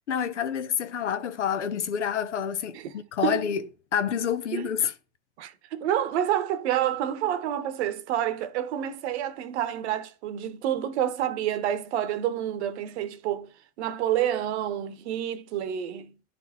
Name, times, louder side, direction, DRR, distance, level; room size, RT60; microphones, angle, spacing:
voice 1, 0.1-3.6 3.9-4.9, left 8 dB, 85° left, 0.7 m, -28 dB
voice 2, 5.4-13.5 13.8-16.3, right 11 dB, 70° right, 0.9 m, -28 dB
11.0 x 3.7 x 3.5 m
hypercardioid pair, 80°, 35 cm